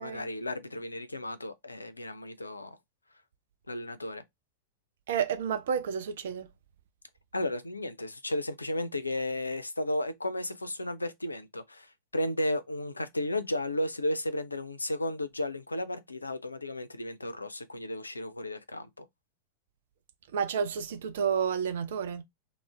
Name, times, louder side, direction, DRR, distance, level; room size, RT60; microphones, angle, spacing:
voice 1, 0.0-2.8 3.7-4.2 7.3-19.1, left 1 dB, 80° left, 0.3 m, -34 dB
voice 2, 5.1-6.5 20.3-22.2, right 7 dB, 60° right, 0.4 m, -30 dB
2.4 x 2.0 x 3.2 m
figure-of-eight pair, 90°, 0 cm